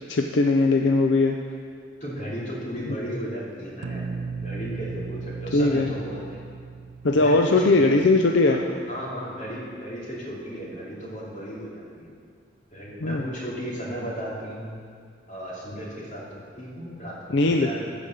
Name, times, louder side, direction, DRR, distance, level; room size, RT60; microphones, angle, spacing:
voice 1, 0.1-1.4 5.5-5.9 7.0-8.6 13.0-13.2 17.3-17.7, left 2 dB, 75° left, 3 dB, 0.5 m, -19 dB
voice 2, 2.0-4.0 4.3-6.4 7.1-8.0 8.4-8.6 8.9-12.1 12.7-14.7 15.3-17.9, equal, 40° left, -6 dB, 2.9 m, -35 dB
sound 1, 3.8-8.7, right 4 dB, 75° right, 0.6 m, -36 dB
15.0 x 5.2 x 6.5 m, 2.2 s
head